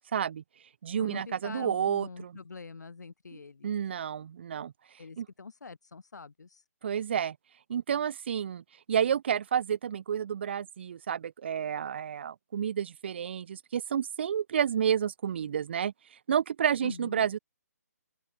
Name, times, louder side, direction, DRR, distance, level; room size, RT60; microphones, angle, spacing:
voice 1, 0.1-0.4 0.8-2.4 3.3-4.7 5.2-5.3 6.8-7.4 7.7-15.9 16.3-17.4, right 8 dB, 40° right, 0.6 m, -30 dB
voice 2, 0.9-3.7 5.0-6.6 16.8-17.3, left 4 dB, 85° left, 1.6 m, -44 dB
open air
hypercardioid pair, 165°, 9 cm